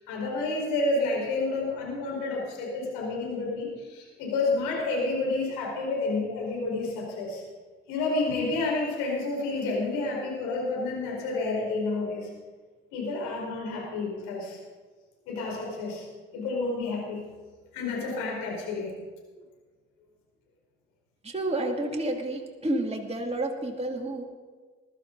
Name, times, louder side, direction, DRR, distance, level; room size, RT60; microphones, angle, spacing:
voice 1, 0.1-7.4 7.9-12.3 12.9-14.6 15.3-16.0 16.3-17.2 17.7-18.9, left 3 dB, 70° left, -2 dB, 4.8 m, -30 dB
voice 2, 21.2-24.2, right 1 dB, 20° right, 0 dB, 2.5 m, -30 dB
21.0 x 13.0 x 4.0 m, 1.4 s
figure-of-eight pair, 40°, 33 cm